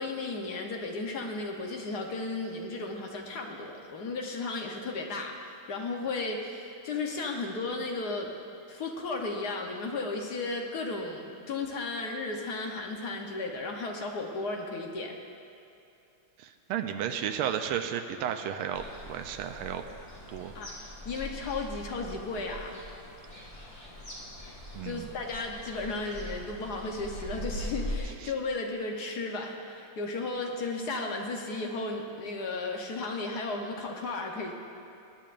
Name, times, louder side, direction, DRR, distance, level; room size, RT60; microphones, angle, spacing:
voice 1, 0.0-8.3 8.7-15.1 20.5-20.7 21.0-22.8 24.8-34.5, left 3 dB, 55° left, 1 dB, 1.3 m, -34 dB
voice 2, 16.4-19.8 20.3-20.5 24.7-25.1, right 9 dB, 90° right, 6 dB, 1.5 m, -33 dB
sound 1, 18.7-28.0, left 1 dB, 25° left, 2.4 m, -42 dB
20.5 x 10.5 x 2.5 m, 2.7 s
omnidirectional pair, 2.3 m